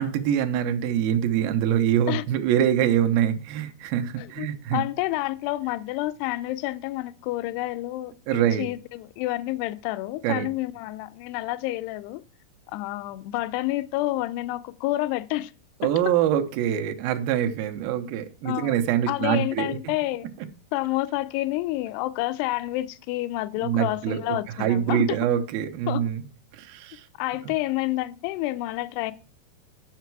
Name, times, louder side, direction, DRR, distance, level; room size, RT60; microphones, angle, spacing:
voice 1, 0.0-4.8 8.3-8.6 10.2-10.5 15.8-19.8 23.6-26.2 26.5-27.1, right 10 dB, 75° right, 2.5 m, -24 dB
voice 2, 4.2-12.2 12.7-15.5 15.8-16.1 18.5-18.8 19.1-20.3 20.7-25.2 25.9-26.0 27.2-29.1, left 17 dB, 85° left, 2.7 m, -29 dB
10.5 x 6.5 x 4.6 m
omnidirectional pair, 4.7 m